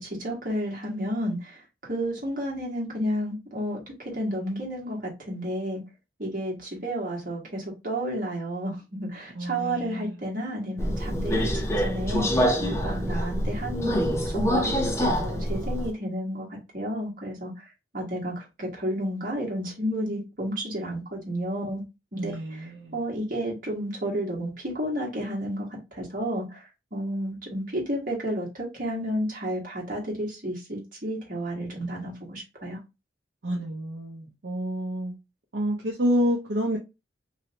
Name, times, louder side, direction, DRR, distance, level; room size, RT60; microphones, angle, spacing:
voice 1, 0.0-1.6 1.9-5.8 6.2-11.5 11.8-16.5 16.7-17.5 17.9-21.8 22.1-26.6 26.9-32.8, equal, 45° right, 1.4 m, -31 dB
voice 2, 9.4-10.2 12.6-13.2 22.2-23.0 33.4-35.1 35.5-36.8, equal, 65° right, 0.7 m, -29 dB
Subway metro underground, 10.8-15.9, equal, 15° left, 0.5 m, -26 dB
3.2 x 2.7 x 2.8 m
head